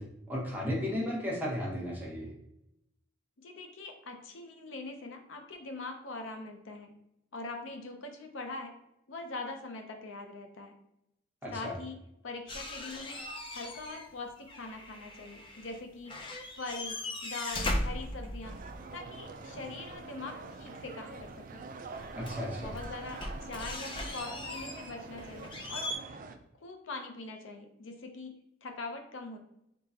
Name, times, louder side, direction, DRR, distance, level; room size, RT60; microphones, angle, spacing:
voice 1, 0.0-2.3 11.4-11.7 22.1-22.7, left 1 dB, 10° right, -5 dB, 1.1 m, -34 dB
voice 2, 3.4-6.9 7.3-8.8 9.1-10.7 11.5-12.0 12.2-13.2 13.5-16.2 16.6-18.6 18.9-21.6 22.5-25.9 26.6-29.4, left 3 dB, 70° left, 5 dB, 0.6 m, -42 dB
sound 1, 12.5-14.1 14.4-15.8 16.1-18.8 21.1-21.2 21.9-26.0, left 1 dB, 25° left, 0.5 m, -39 dB
sound 2, 18.4-26.4, right 3 dB, 40° right, 0.3 m, -45 dB
3.8 x 3.7 x 2.8 m, 0.81 s
head